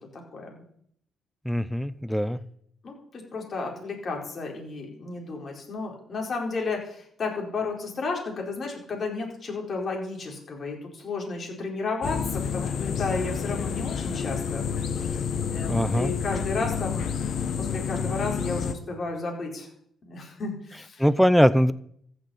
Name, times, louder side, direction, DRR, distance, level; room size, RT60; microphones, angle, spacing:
voice 1, 0.1-0.6 2.8-14.7 15.0-15.2 15.5-17.1 17.6-19.7 20.1-21.1, left 3 dB, 45° left, 0 dB, 4.6 m, -33 dB
voice 2, 1.5-2.4 15.7-16.1 21.0-21.7, equal, ahead, 16 dB, 0.7 m, -21 dB
sound 1, 12.0-18.7, left 7 dB, 60° left, 1.1 m, -29 dB
14.5 x 6.7 x 8.7 m, 0.69 s
cardioid pair, 90°, 0 cm